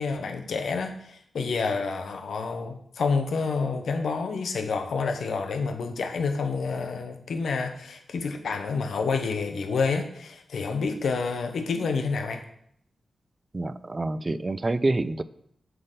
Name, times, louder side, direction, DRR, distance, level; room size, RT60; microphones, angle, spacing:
voice 1, 0.0-12.4, left 4 dB, 80° left, 6 dB, 0.9 m, -28 dB
voice 2, 13.5-15.2, right 2 dB, 25° right, 15 dB, 0.3 m, -27 dB
7.8 x 3.9 x 6.6 m, 0.69 s
wide cardioid pair, 155°, 0 cm